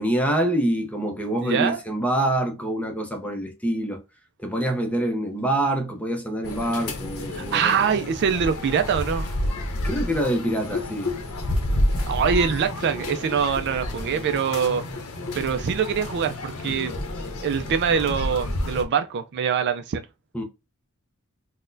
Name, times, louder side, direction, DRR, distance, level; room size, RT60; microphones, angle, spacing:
voice 1, 0.0-4.0 4.4-7.7 9.8-11.1 20.3-20.4, right 1 dB, 5° left, 0.6 m, -25 dB
voice 2, 1.4-1.8 7.3-9.4 12.1-14.8 15.3-17.0 17.4-20.0, right 7 dB, 50° right, 0.3 m, -24 dB
sound 1, 6.4-18.8, left 1 dB, 75° left, 0.8 m, -29 dB
4.0 x 2.1 x 2.5 m
head